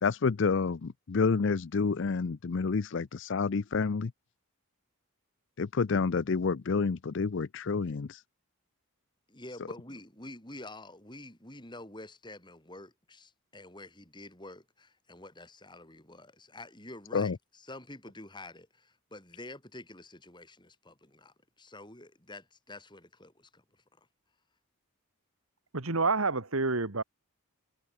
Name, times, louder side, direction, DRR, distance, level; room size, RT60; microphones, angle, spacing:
voice 1, 0.0-4.1 5.6-8.2 17.1-17.4, left 4 dB, 55° left, 0.5 m, -29 dB
voice 2, 9.3-23.6, left 2 dB, 20° left, 5.8 m, -48 dB
voice 3, 25.7-27.0, right 3 dB, 70° right, 1.8 m, -28 dB
head